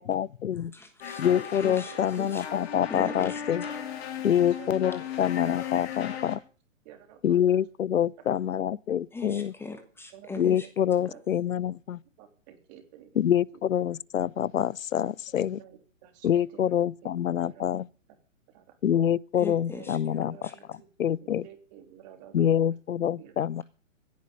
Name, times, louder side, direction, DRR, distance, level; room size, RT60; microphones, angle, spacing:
voice 1, 0.0-0.7 1.2-3.6 4.2-6.4 7.2-9.5 10.4-12.0 13.2-15.6 16.2-17.9 18.8-20.5 21.0-21.4 22.3-23.6, left 9 dB, 80° left, 0.7 m, -26 dB
voice 2, 0.5-2.4 2.9-3.4 9.1-10.7 19.4-20.6, left 3 dB, 5° left, 1.3 m, -40 dB
sound 1, 1.0-6.4, left 8 dB, 50° left, 3.8 m, -36 dB
voice 3, 4.2-5.1 5.5-5.6 6.8-7.6 10.1-10.3 10.6-11.2 12.2-13.2 15.3-16.7 17.0-17.1 17.5-17.6 18.5-18.7 19.8-19.9 20.2-22.7 23.2-23.3, right 11 dB, 30° right, 3.1 m, -52 dB
16.0 x 10.0 x 6.8 m
hypercardioid pair, 140°, 40 cm